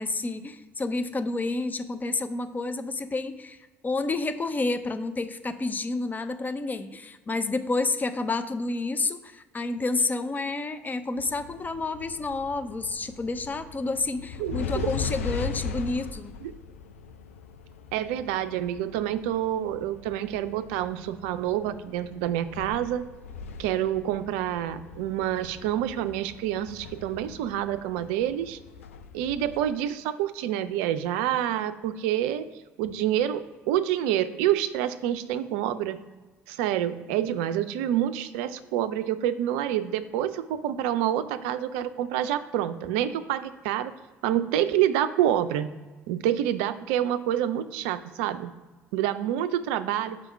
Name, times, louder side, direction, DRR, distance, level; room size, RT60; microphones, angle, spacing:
voice 1, 0.0-3.6 3.8-16.4, left 3 dB, 25° left, 10 dB, 0.5 m, -29 dB
sound 1, 11.2-29.7, left 6 dB, 80° left, 0.4 m, -40 dB
voice 2, 14.4-14.9 16.4-16.5 17.9-23.0 23.6-28.6 29.1-32.5 32.8-36.0 36.5-43.9 44.2-45.7 46.1-48.6 48.9-50.2, right 11 dB, 70° right, 12 dB, 0.4 m, -27 dB
5.0 x 3.5 x 5.5 m, 1.3 s
figure-of-eight pair, 50°, 7 cm